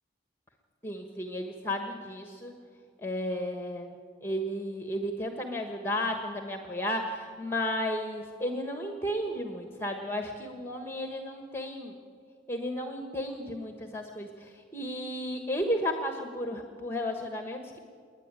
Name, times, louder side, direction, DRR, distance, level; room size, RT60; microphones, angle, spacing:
voice 1, 0.8-2.5 3.0-3.9 4.2-11.9 12.5-17.8, equal, 15° left, 5 dB, 1.3 m, -33 dB
28.5 x 10.5 x 9.0 m, 2.2 s
head